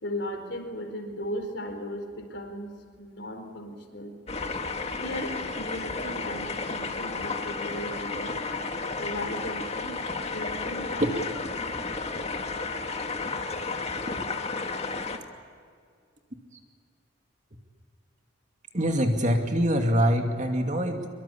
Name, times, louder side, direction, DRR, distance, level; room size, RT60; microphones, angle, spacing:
voice 1, 0.0-2.7 3.0-4.1 5.0-8.3 9.0-9.9 10.3-11.1, left 1 dB, 60° left, 5 dB, 4.4 m, -36 dB
sound 1, 4.3-15.2, left 3 dB, 30° left, 1.8 m, -32 dB
voice 2, 18.7-21.1, equal, 35° right, 4 dB, 2.5 m, -24 dB
24.0 x 23.5 x 8.6 m, 2.1 s
head